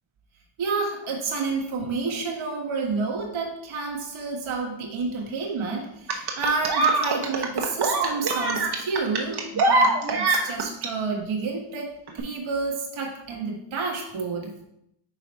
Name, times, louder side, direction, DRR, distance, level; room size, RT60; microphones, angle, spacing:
voice 1, 0.6-14.5, right 4 dB, 80° right, -1 dB, 1.6 m, -29 dB
sound 1, 6.1-10.9 12.1-12.2, right 3 dB, 55° right, 1.1 m, -23 dB
5.5 x 4.1 x 4.4 m, 0.78 s
cardioid pair, 80°, 47 cm